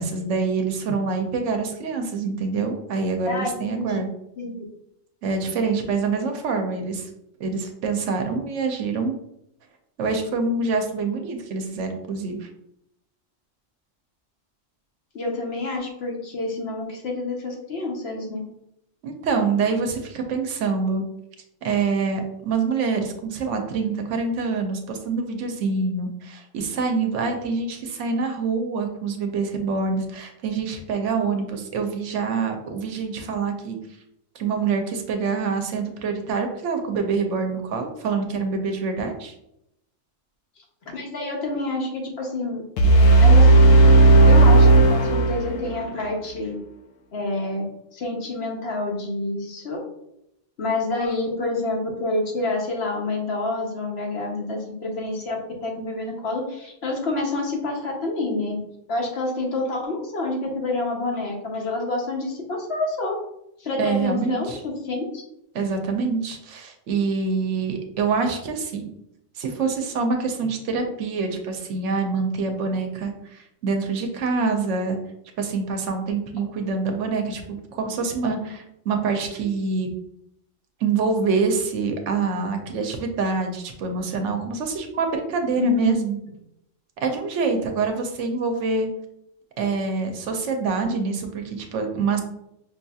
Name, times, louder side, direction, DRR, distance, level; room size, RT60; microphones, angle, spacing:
voice 1, 0.0-4.1 5.2-7.1 7.4-9.2 10.0-12.5 19.0-21.0 21.6-33.8 34.4-39.3 63.8-64.6 65.5-68.9 69.4-75.0 75.4-79.9 80.8-86.2 87.0-88.9 89.6-92.2, right 4 dB, 70° right, 4 dB, 0.9 m, -26 dB
voice 2, 3.3-4.0 4.4-4.6 15.1-18.5 40.9-42.6 43.2-43.5 44.2-46.6 47.1-47.6 47.9-49.8 50.6-58.6 58.9-63.1 63.6-65.2 85.2-86.0, left 2 dB, 60° left, 0 dB, 1.0 m, -28 dB
sound 1, 42.8-45.8, right 2 dB, 80° left, 1.0 m, -13 dB
5.3 x 2.7 x 2.3 m, 0.80 s
omnidirectional pair, 1.3 m